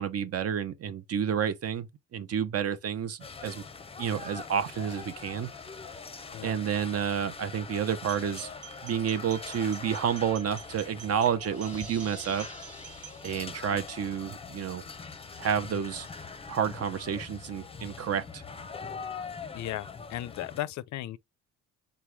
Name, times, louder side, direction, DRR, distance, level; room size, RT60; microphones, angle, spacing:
voice 1, 0.0-3.6 4.0-5.5 6.4-8.5 8.8-12.5 13.2-14.8 15.4-16.1 16.5-18.4, right 8 dB, 55° right, 0.8 m, -30 dB
sound 1, 3.2-20.6, left 5 dB, 20° left, 0.6 m, -43 dB
sound 2, 8.0-13.4, right 11 dB, 80° right, 1.4 m, -48 dB
sound 3, 11.4-14.0, equal, 5° right, 1.2 m, -49 dB
voice 2, 19.5-21.2, left 13 dB, 70° left, 0.4 m, -36 dB
3.9 x 3.0 x 3.4 m
cardioid pair, 90°, 30 cm